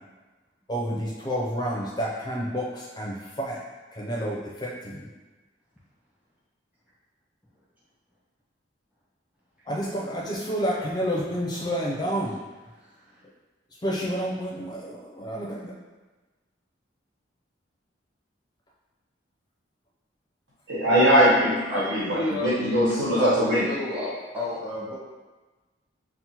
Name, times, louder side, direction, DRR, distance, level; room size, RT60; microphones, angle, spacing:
voice 1, 0.7-3.6 4.0-5.0 9.7-12.4 13.8-15.7, equal, 20° left, -4 dB, 0.5 m, -29 dB
voice 2, 20.7-23.7, equal, 80° right, -7 dB, 1.3 m, -21 dB
voice 3, 21.7-22.8 23.2-24.9, left 2 dB, 10° right, -9 dB, 0.9 m, -32 dB
5.7 x 2.1 x 2.9 m, 1.2 s
head